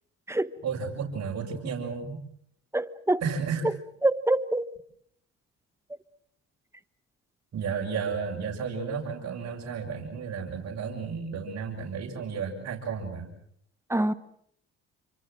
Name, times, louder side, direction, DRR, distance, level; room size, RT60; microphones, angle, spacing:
voice 1, 0.6-2.2 3.2-3.6 7.5-13.3, right 6 dB, 60° right, 6.3 m, -32 dB
voice 2, 2.7-3.2 4.0-4.7 13.9-14.1, right 1 dB, 10° right, 1.2 m, -25 dB
28.0 x 25.0 x 6.3 m
cardioid pair, 80°, 29 cm